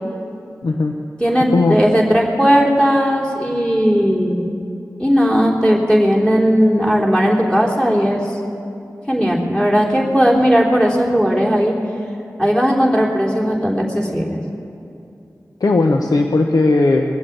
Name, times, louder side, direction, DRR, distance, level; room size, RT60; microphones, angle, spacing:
voice 1, 0.6-1.0 1.5-1.8 15.6-17.0, left 3 dB, 85° left, 3 dB, 0.8 m, -16 dB
voice 2, 1.2-4.5 5.0-8.4 9.1-11.7 12.4-14.4, equal, 15° left, -4 dB, 3.2 m, -16 dB
21.0 x 7.9 x 8.5 m, 2.6 s
wide cardioid pair, 55°, 6 cm